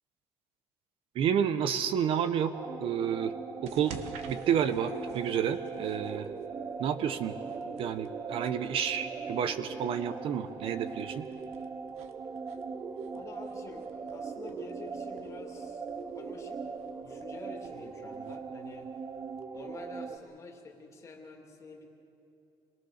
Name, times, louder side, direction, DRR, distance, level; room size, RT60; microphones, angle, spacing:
voice 1, 1.1-2.5 2.8-3.3 3.6-3.9 4.3-6.3 6.8-7.3 7.8-11.3, right 8 dB, 55° right, 12 dB, 0.9 m, -30 dB
sound 1, 2.5-20.2, right 5 dB, 25° right, 0.6 m, -40 dB
sound 2, 3.6-19.4, right 6 dB, 85° right, 1.4 m, -53 dB
voice 2, 13.1-15.9 16.1-16.6 16.9-18.9 19.5-21.9, left 4 dB, 30° left, 1 dB, 2.5 m, -48 dB
26.0 x 21.0 x 6.6 m, 2.9 s
cardioid pair, 145°, 11 cm